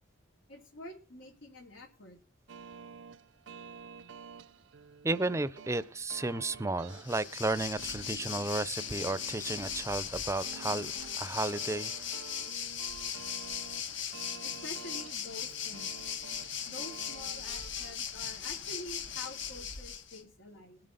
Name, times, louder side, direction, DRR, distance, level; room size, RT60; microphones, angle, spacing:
voice 1, 0.5-2.2 14.4-16.2 16.7-20.8, left 1 dB, 90° left, 3.1 m, -47 dB
sound 1, 2.5-18.0, right 6 dB, 70° right, 0.5 m, -50 dB
voice 2, 5.0-12.1, right 2 dB, 15° right, 0.5 m, -33 dB
Waves surf, 6.9-20.2, left 8 dB, 70° left, 1.3 m, -38 dB
21.0 x 7.7 x 4.0 m
head